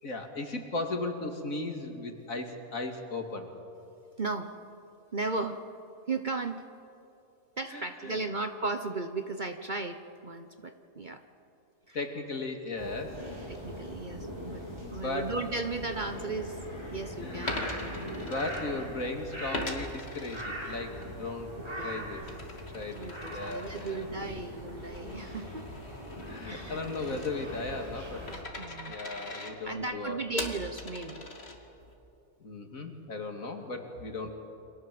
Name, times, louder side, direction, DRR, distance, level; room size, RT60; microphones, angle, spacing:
voice 1, 0.0-3.5 7.7-8.3 11.9-13.2 14.8-15.3 17.2-17.7 18.1-21.5 21.8-22.3 22.7-24.0 26.3-28.2 28.7-30.3 32.4-34.3, left 2 dB, 65° left, 4 dB, 2.9 m, -37 dB
voice 2, 4.2-4.5 5.1-5.6 6.1-6.7 7.6-11.2 11.9-12.0 13.5-14.6 14.9-16.6 16.9-17.6 21.8-22.1 22.9-25.7 26.4-26.8 28.6-29.0 29.6-31.3 34.2-34.3, right 3 dB, 35° right, 7 dB, 1.1 m, -35 dB
sound 1, 12.8-28.4, equal, 20° right, 6.3 m, -41 dB
Coin (dropping), 17.5-19.1 19.5-21.1 21.5-31.9, left 2 dB, 45° left, 2.9 m, -42 dB
30.0 x 25.0 x 7.8 m, 2.8 s
omnidirectional pair, 1.5 m